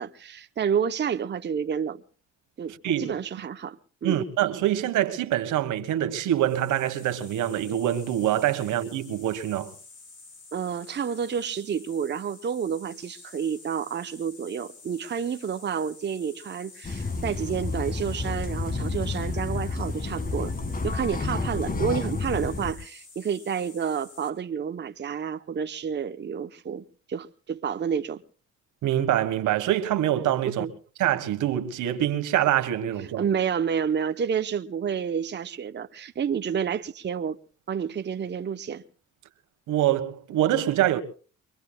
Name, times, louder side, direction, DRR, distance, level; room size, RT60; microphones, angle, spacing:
voice 1, 0.0-2.0 2.6-4.2 10.5-20.5 20.8-28.2 30.5-30.7 33.0-37.4 37.7-38.8, right 7 dB, 35° right, 0.8 m, -30 dB
voice 2, 4.0-9.7 28.8-30.6 31.0-33.3 39.7-41.0, right 12 dB, 85° right, 1.5 m, -25 dB
sound 1, 6.3-24.3, left 4 dB, 55° left, 5.4 m, -50 dB
sound 2, 16.8-22.7, left 3 dB, 30° left, 1.7 m, -30 dB
24.5 x 22.0 x 2.3 m
cardioid pair, 90°, 30 cm